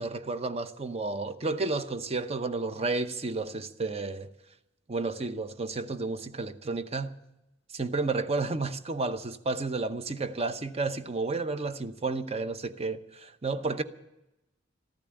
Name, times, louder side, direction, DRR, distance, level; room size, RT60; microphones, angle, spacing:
voice 1, 0.0-4.3 4.9-7.1 7.7-13.8, right 3 dB, 35° right, 0.8 m, -31 dB
14.5 x 10.5 x 8.8 m
head